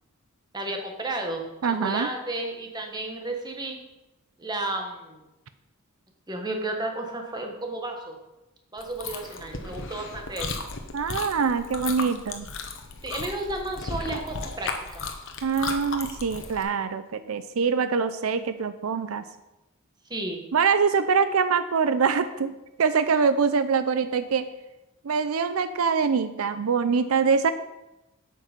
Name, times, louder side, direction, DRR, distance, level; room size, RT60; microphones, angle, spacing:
voice 1, 0.5-3.8 4.4-5.2 6.3-8.2 8.7-10.7 13.0-15.0 20.1-20.4, right 2 dB, 20° right, 3 dB, 1.4 m, -33 dB
voice 2, 1.6-2.1 10.9-12.5 15.4-19.2 20.5-22.5 22.8-24.5 25.0-27.5, right 5 dB, 80° right, 12 dB, 0.5 m, -24 dB
Chewing mastication, 8.8-16.6, left 4 dB, 60° left, 1.1 m, -35 dB
8.4 x 7.5 x 5.3 m, 0.96 s
head